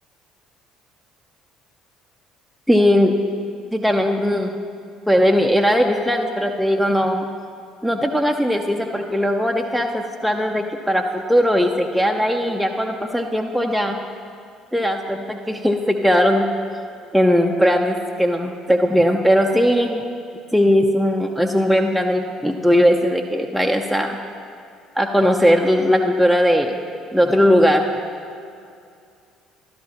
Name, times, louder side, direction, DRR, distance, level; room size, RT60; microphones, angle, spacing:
voice 1, 2.7-3.2 3.7-4.6 5.1-7.3 7.8-14.0 14.7-16.5 17.1-20.0 20.5-24.2 25.0-26.8 27.1-27.9, equal, ahead, 3 dB, 0.6 m, -18 dB
13.0 x 12.0 x 2.9 m, 2.4 s
figure-of-eight pair, 55°, 0 cm